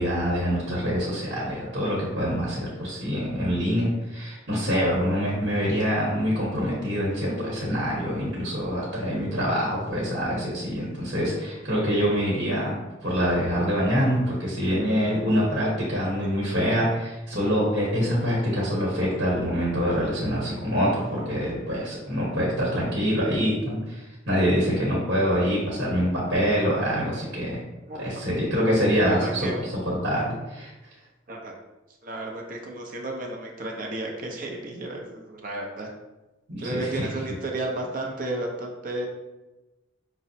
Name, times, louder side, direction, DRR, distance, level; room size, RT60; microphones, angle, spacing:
voice 1, 0.0-12.7 13.0-27.6 27.9-30.7 36.5-37.1, equal, 65° right, -6 dB, 1.1 m, -25 dB
voice 2, 29.0-29.6 31.3-31.5 32.0-35.9 36.6-39.1, right 2 dB, 45° right, 0 dB, 0.6 m, -33 dB
5.3 x 2.0 x 2.7 m, 1.1 s
head